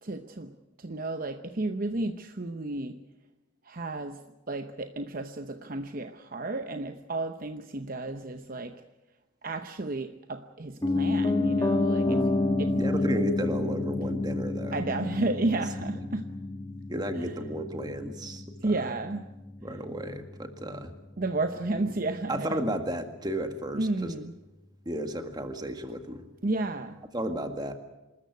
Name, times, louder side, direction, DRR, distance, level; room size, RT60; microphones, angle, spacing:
voice 1, 0.0-0.5 0.8-3.0 3.6-4.2 4.5-8.8 9.4-12.3 12.6-12.8 14.7-16.3 17.2-17.3 18.6-19.2 21.2-22.6 23.7-24.3 26.4-27.0, right 2 dB, 45° right, 7 dB, 0.8 m, -32 dB
Piano, 10.8-20.8 21.1-21.2, left 2 dB, 20° left, 1.4 m, -29 dB
voice 2, 12.8-14.8 16.9-18.8 19.6-20.9 22.3-24.1 24.8-26.2 27.1-27.7, equal, 20° right, 6 dB, 1.7 m, -33 dB
26.5 x 13.5 x 9.4 m, 1.1 s
head